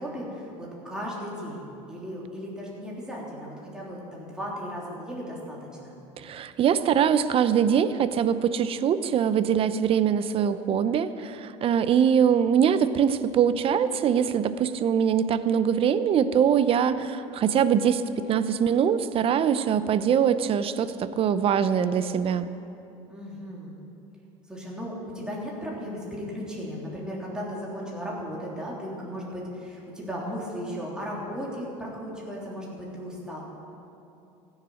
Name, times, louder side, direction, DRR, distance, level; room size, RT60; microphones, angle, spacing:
voice 1, 0.0-5.9 23.1-23.8 24.5-33.4, equal, 5° right, -5 dB, 3.4 m, -36 dB
voice 2, 6.2-18.0 18.3-22.5, right 8 dB, 40° right, 13 dB, 0.7 m, -23 dB
15.5 x 7.4 x 9.4 m, 2.9 s
supercardioid pair, 105°, 14 cm